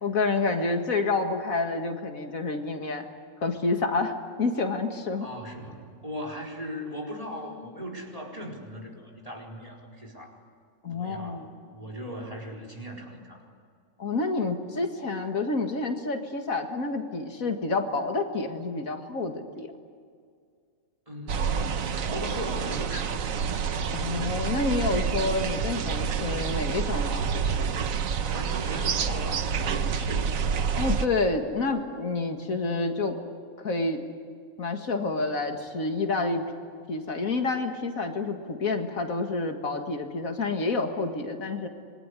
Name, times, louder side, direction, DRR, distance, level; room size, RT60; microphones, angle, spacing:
voice 1, 0.0-3.1 3.4-5.3 10.8-11.5 14.0-19.7 23.9-27.4 30.7-33.2 33.6-34.1 34.6-36.5 36.9-41.7, left 3 dB, 80° left, 5 dB, 2.3 m, -28 dB
voice 2, 5.2-10.4 10.9-13.4 21.1-23.2 28.3-30.5, equal, 25° right, 0 dB, 4.5 m, -38 dB
sound 1, 21.3-31.1, right 6 dB, 75° right, 1.4 m, -28 dB
26.0 x 22.0 x 9.8 m, 2.2 s
omnidirectional pair, 1.4 m